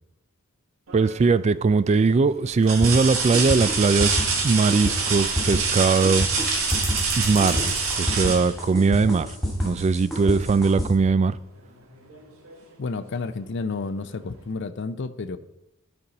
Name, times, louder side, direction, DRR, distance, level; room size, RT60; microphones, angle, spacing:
voice 1, 0.9-6.3 7.2-7.6 8.0-9.3 9.6-11.4, right 4 dB, 30° right, 0.3 m, -20 dB
sound 1, 0.9-1.4 1.9-2.0 2.6-9.3 11.1-11.2 11.7-12.7 14.0-14.1, right 5 dB, 85° right, 1.5 m, -27 dB
Marble Roll, 2.5-8.0, right 2 dB, 55° right, 2.8 m, -37 dB
sound 2, 2.8-10.9, equal, ahead, 2.4 m, -28 dB
voice 2, 12.8-15.4, left 4 dB, 60° left, 0.5 m, -31 dB
12.0 x 5.4 x 4.1 m
head